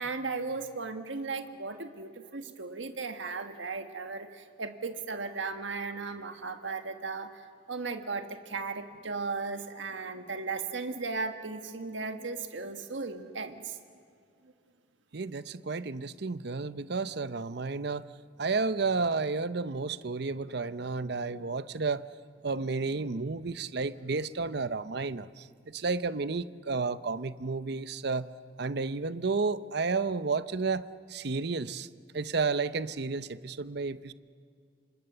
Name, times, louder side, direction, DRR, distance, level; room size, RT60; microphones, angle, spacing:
voice 1, 0.0-7.3 7.7-13.8, right 4 dB, 90° right, 7 dB, 1.6 m, -36 dB
voice 2, 15.1-18.1 18.4-22.1 22.4-28.3 28.6-30.8 31.1-31.9 32.1-34.1, right 4 dB, 60° right, 14 dB, 0.7 m, -32 dB
28.5 x 25.5 x 6.9 m, 2.3 s
head